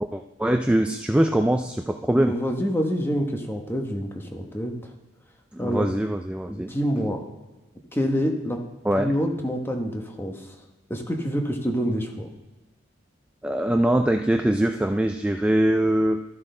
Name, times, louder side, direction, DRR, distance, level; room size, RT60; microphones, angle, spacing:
voice 1, 0.0-2.3 5.5-6.7 8.8-9.1 13.4-16.2, right 1 dB, 5° right, 5 dB, 0.3 m, -22 dB
voice 2, 2.1-4.7 5.6-5.9 6.5-7.2 7.9-8.6 9.0-10.5 10.9-12.3, equal, 10° left, 2 dB, 1.1 m, -27 dB
13.0 x 6.0 x 3.8 m, 1.2 s
head